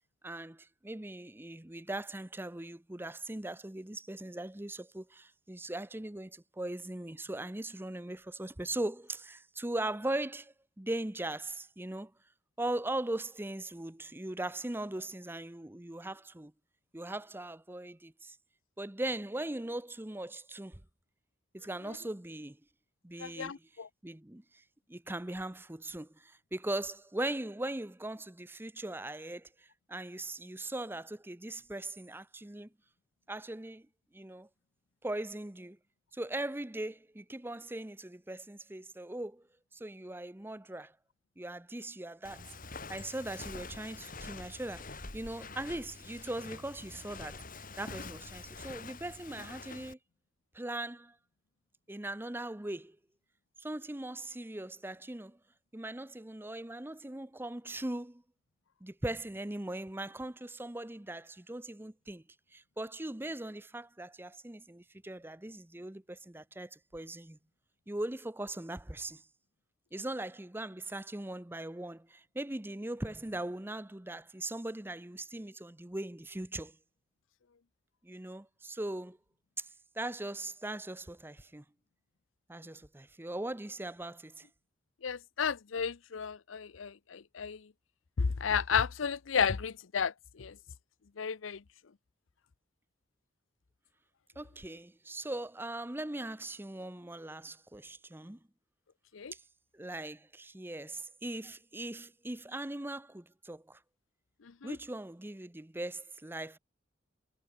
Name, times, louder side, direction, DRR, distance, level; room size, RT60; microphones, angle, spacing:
voice 1, 0.2-12.1 12.6-16.5 16.9-18.4 18.8-20.8 21.5-22.6 23.0-23.7 24.0-32.7 33.3-33.9 34.1-34.5 35.0-35.8 36.1-39.4 39.7-40.9 41.4-50.0 50.5-51.2 51.9-53.0 53.6-55.4 55.7-58.2 58.8-62.2 62.5-67.4 67.9-69.2 69.9-76.8 78.0-79.2 79.6-79.7 79.9-81.6 82.5-84.5 94.4-98.4 99.3-99.4 99.7-103.8 104.6-106.6, right 1 dB, 10° right, 0.7 m, -40 dB
voice 2, 23.2-23.9 85.0-87.6 88.2-90.5 91.2-91.6 99.1-99.3 104.6-104.8, left 6 dB, 85° left, 0.6 m, -33 dB
Walk footsteps, 42.2-49.9, left 3 dB, 45° left, 4.2 m, -46 dB
head